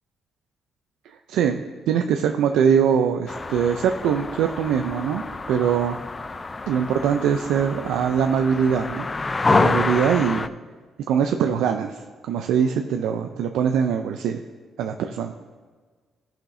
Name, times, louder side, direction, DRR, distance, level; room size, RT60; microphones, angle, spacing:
voice 1, 1.3-5.2 5.5-6.0 6.7-9.1 9.5-10.5 11.1-14.4 14.8-15.3, right 7 dB, 85° right, 5 dB, 0.4 m, -22 dB
sound 1, 3.3-10.5, left 3 dB, 25° left, 0.4 m, -27 dB
17.5 x 5.8 x 2.7 m, 1.5 s
cardioid pair, 90°, 0 cm